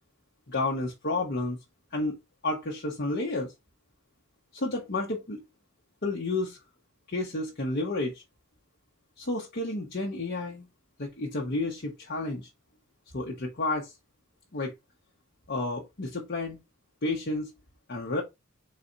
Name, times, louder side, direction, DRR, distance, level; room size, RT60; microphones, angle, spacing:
voice 1, 0.5-1.6 1.9-2.2 2.4-3.5 4.5-5.4 6.0-6.6 7.1-8.2 9.2-10.6 11.0-12.5 13.1-13.9 14.5-14.7 15.5-16.6 17.0-17.5 17.9-18.2, left 2 dB, 50° left, 0.9 m, -31 dB
4.1 x 2.6 x 4.3 m
head